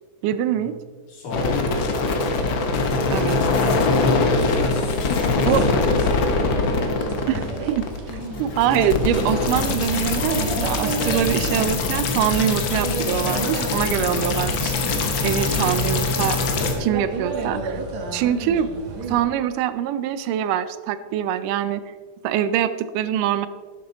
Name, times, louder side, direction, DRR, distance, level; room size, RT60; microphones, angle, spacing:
voice 1, 0.2-0.7 3.1-3.4 5.4-5.6 7.3-7.9 8.4-14.7 15.2-16.4 16.8-17.8 18.1-18.7 19.1-21.8 22.2-23.5, right 10 dB, 85° right, 13 dB, 2.2 m, -23 dB
voice 2, 1.1-2.1 4.5-6.9 15.4-15.8 16.6-16.8, left 2 dB, 85° left, -3 dB, 4.7 m, -32 dB
sound 1, 1.3-16.7, left 3 dB, 65° left, 1.2 m, -23 dB
sound 2, 6.3-19.2, right 3 dB, 60° right, 2.6 m, -32 dB
12.0 x 11.0 x 4.0 m, 1.5 s
omnidirectional pair, 3.7 m